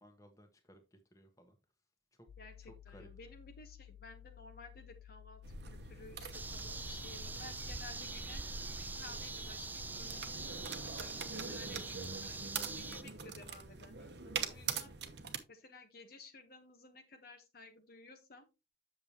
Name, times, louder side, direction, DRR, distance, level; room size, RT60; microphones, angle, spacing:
voice 1, 0.0-1.6 2.1-2.3 2.7-3.1, equal, 15° left, 1.3 m, -60 dB
sound 1, 2.3-7.7, left 10 dB, 85° left, 0.4 m, -55 dB
voice 2, 2.4-8.4 8.9-10.4 10.8-14.9 15.5-18.5, left 3 dB, 50° left, 1.1 m, -55 dB
sound 2, 5.4-15.4, right 6 dB, 60° right, 1.0 m, -44 dB
sound 3, 6.3-13.0, right 3 dB, 10° right, 0.3 m, -43 dB
8.0 x 6.9 x 2.9 m
head